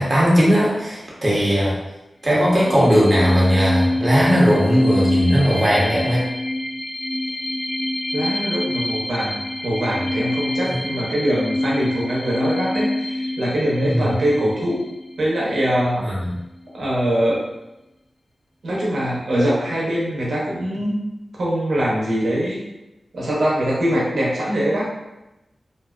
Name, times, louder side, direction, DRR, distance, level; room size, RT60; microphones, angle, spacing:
voice 1, 0.0-1.8 2.2-6.2 10.6-10.8 13.8-14.1 16.0-16.4, equal, 35° right, -6 dB, 0.8 m, -18 dB
sound 1, 2.3-15.7, left 1 dB, 30° left, 0.3 m, -26 dB
voice 2, 8.1-14.8 15.2-16.0 16.7-17.4 18.6-21.0 21.4-22.7 23.1-24.9, equal, 85° right, -5 dB, 0.8 m, -22 dB
2.5 x 2.1 x 2.3 m, 0.96 s
wide cardioid pair, 80°, 0 cm